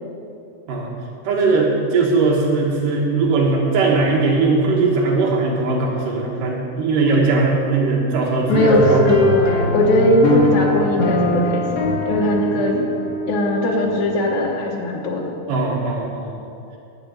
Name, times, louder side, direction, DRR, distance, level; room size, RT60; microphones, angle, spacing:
voice 1, 1.2-9.0 12.5-12.6 15.5-16.4, right 3 dB, 90° right, -3 dB, 3.2 m, -19 dB
voice 2, 8.5-12.8 13.3-15.2, left 1 dB, 70° left, -2 dB, 2.5 m, -19 dB
sound 1, 8.5-14.1, left 1 dB, 50° left, 2.1 m, -21 dB
12.0 x 6.8 x 8.8 m, 2.6 s
omnidirectional pair, 3.7 m